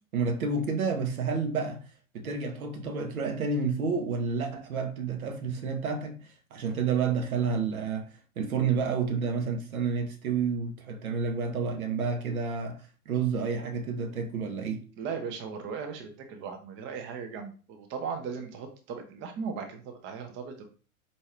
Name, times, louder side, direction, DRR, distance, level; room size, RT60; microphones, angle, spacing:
voice 1, 0.1-1.8 2.1-8.1 8.4-12.8 13.1-14.8, right 5 dB, 70° right, 0.9 m, -30 dB
voice 2, 15.0-20.7, right 6 dB, 25° right, 0.7 m, -37 dB
4.4 x 2.7 x 3.2 m
figure-of-eight pair, 90°, 44 cm